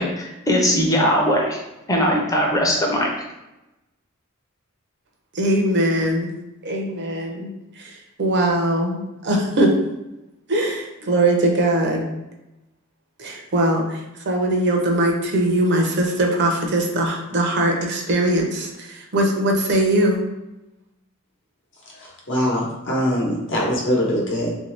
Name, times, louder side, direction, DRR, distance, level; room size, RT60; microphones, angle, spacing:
voice 1, 0.0-1.6 1.9-3.1, equal, 15° left, -1 dB, 0.6 m, -20 dB
voice 2, 5.4-6.3 6.6-7.5 7.8-7.9 8.2-9.7 10.5-12.0 13.2-13.8 14.3-20.2, right 1 dB, 55° right, 2 dB, 0.6 m, -21 dB
voice 3, 21.8-24.5, equal, 60° left, -3 dB, 0.9 m, -23 dB
3.1 x 2.6 x 3.3 m, 0.96 s
head